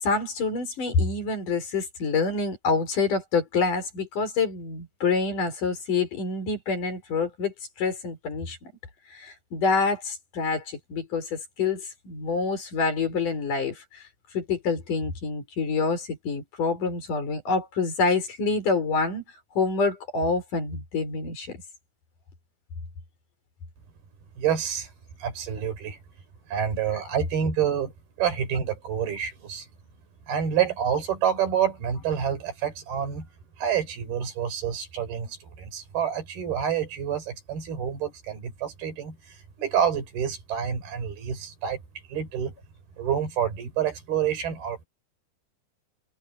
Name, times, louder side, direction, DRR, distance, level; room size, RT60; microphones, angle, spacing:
voice 1, 0.0-8.7 9.1-14.0 14.3-19.2 19.5-21.5, left 4 dB, 60° left, 6.5 m, -27 dB
voice 2, 24.4-24.9 25.2-26.0 26.5-27.9 28.2-29.7 30.3-33.3 33.6-41.8 42.1-42.5 43.0-44.9, right 8 dB, 90° right, 6.2 m, -28 dB
omnidirectional pair, 4.3 m